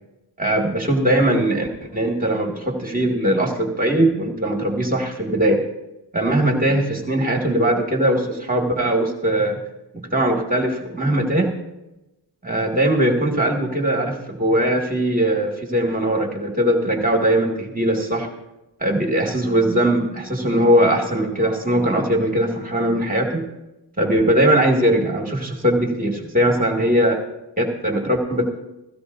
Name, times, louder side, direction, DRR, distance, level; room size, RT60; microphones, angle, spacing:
voice 1, 0.4-5.6 6.1-9.6 9.9-11.6 12.4-18.3 18.8-23.4 24.0-27.2 27.6-28.5, right 1 dB, 20° right, -1 dB, 2.2 m, -20 dB
17.0 x 15.5 x 2.7 m, 0.95 s
wide cardioid pair, 95°, 43 cm